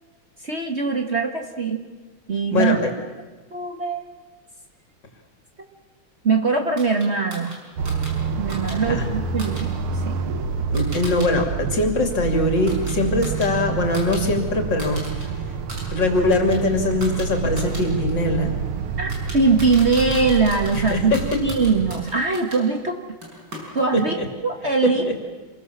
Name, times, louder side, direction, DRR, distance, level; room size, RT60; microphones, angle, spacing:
voice 1, 0.4-1.8 2.3-2.8 3.5-4.1 6.2-7.6 8.4-10.1 19.0-21.1 21.4-23.0 23.7-24.1 24.4-25.0, right 4 dB, 35° right, 3 dB, 1.7 m, -21 dB
sound 1, 6.8-11.3 11.6-14.2 14.5-15.3 15.6-22.6 23.2-24.1, right 1 dB, 50° right, 6.1 m, -40 dB
sound 2, 7.8-22.0, right 5 dB, 80° right, 2.1 m, -28 dB
voice 2, 10.7-15.0 15.9-18.5 20.7-21.2 23.9-24.3 24.8-24.9, left 2 dB, 55° left, 4 dB, 3.7 m, -22 dB
27.5 x 22.0 x 7.3 m, 1.3 s
omnidirectional pair, 2.3 m